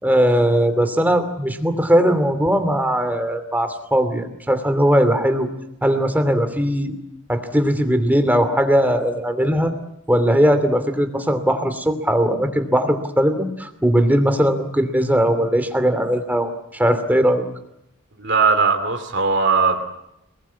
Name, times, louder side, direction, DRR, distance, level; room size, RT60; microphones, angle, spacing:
voice 1, 0.0-5.5 5.8-6.9 7.3-9.7 10.1-17.4, equal, 10° right, 8 dB, 2.7 m, -19 dB
voice 2, 18.2-19.8, right 4 dB, 55° right, 5 dB, 2.5 m, -18 dB
29.0 x 20.5 x 8.5 m, 0.82 s
head